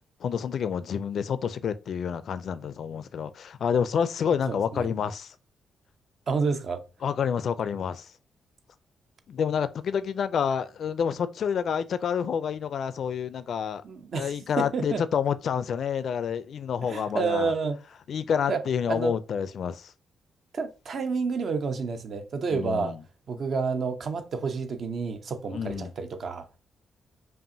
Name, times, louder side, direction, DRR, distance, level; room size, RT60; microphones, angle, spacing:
voice 1, 0.2-5.3 7.0-8.1 9.3-13.8 14.2-17.5 18.1-19.9 22.5-23.0 25.5-25.9, left 7 dB, 60° left, 0.4 m, -28 dB
voice 2, 4.5-4.9 6.3-6.8 13.8-15.0 16.8-17.8 18.5-18.6 18.9-19.1 20.5-23.0 23.3-26.5, right 4 dB, 55° right, 0.7 m, -29 dB
5.4 x 2.5 x 2.7 m
cardioid pair, 115°, 0 cm